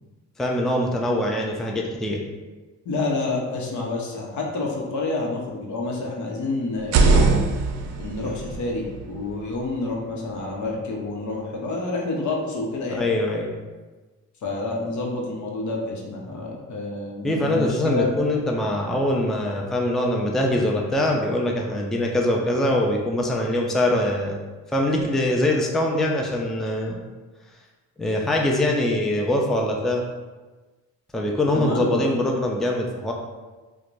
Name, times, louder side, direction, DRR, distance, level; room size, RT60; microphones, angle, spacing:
voice 1, 0.4-2.2 8.2-8.4 12.9-13.5 17.2-24.4 24.7-27.0 28.0-30.0 31.1-33.1, left 1 dB, ahead, 0 dB, 0.4 m, -23 dB
voice 2, 2.8-7.4 8.0-13.1 14.4-18.1 31.5-32.1, left 3 dB, 70° left, -1 dB, 0.8 m, -28 dB
sound 1, 6.7-10.6, right 4 dB, 65° right, 0.5 m, -23 dB
4.4 x 2.2 x 2.5 m, 1.2 s
cardioid pair, 95°, 31 cm